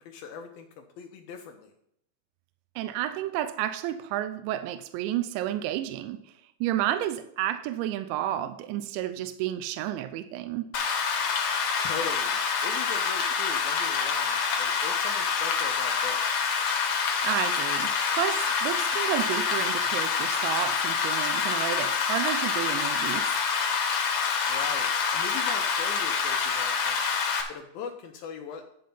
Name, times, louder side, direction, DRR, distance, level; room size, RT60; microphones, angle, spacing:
voice 1, 0.0-1.7 11.8-16.4 24.5-27.1 27.5-28.6, left 6 dB, 80° left, 2.1 m, -40 dB
voice 2, 2.8-6.3 6.6-10.7 17.2-23.4, right 12 dB, 85° right, 2.9 m, -31 dB
Rain, 10.7-27.4, left 6 dB, 60° left, 2.4 m, -27 dB
10.5 x 5.7 x 5.4 m
omnidirectional pair, 5.2 m